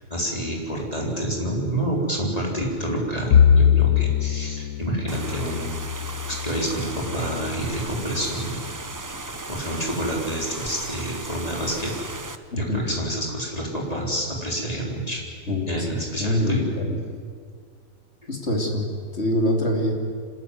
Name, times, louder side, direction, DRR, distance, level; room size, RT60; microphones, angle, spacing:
voice 1, 0.1-5.7 6.3-8.6 9.5-11.9 12.6-15.2 15.7-16.7, right 1 dB, 25° left, -1 dB, 4.0 m, -28 dB
Bowed string instrument, 3.3-7.7, left 8 dB, 75° left, 1.2 m, -22 dB
sound 1, 5.1-12.4, right 3 dB, 20° right, 0.6 m, -36 dB
voice 2, 15.5-15.9 16.2-17.0 18.3-18.9 19.1-19.9, left 1 dB, 50° left, 2 dB, 3.1 m, -24 dB
25.5 x 13.5 x 9.5 m, 2.1 s
omnidirectional pair, 1.4 m